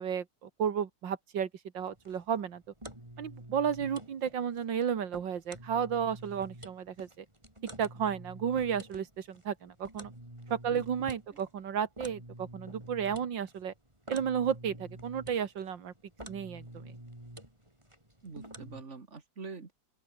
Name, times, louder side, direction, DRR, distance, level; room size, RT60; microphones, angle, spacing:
voice 1, 0.0-1.5 1.7-2.6 3.2-7.3 7.8-10.1 10.5-13.7 14.1-15.9 16.3-16.9, right 8 dB, 90° right, 2.3 m, -33 dB
sound 1, 1.8-18.8, right 1 dB, 15° right, 5.7 m, -49 dB
voice 2, 18.2-19.7, right 4 dB, 40° right, 2.7 m, -45 dB
open air
omnidirectional pair, 2.0 m